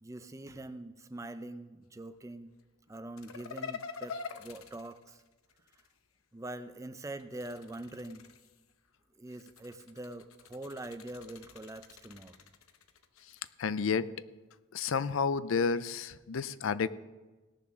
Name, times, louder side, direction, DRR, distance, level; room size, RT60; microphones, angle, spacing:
voice 1, 0.0-2.5 2.9-5.2 6.3-8.3 9.2-12.3, right 1 dB, 15° right, 11 dB, 0.5 m, -44 dB
sound 1, 3.2-5.9 7.2-8.7 9.3-13.5, left 5 dB, 90° left, 0.9 m, -46 dB
voice 2, 13.6-14.1 14.7-16.9, left 5 dB, 70° left, 16 dB, 0.5 m, -30 dB
17.5 x 7.0 x 6.1 m, 1.2 s
head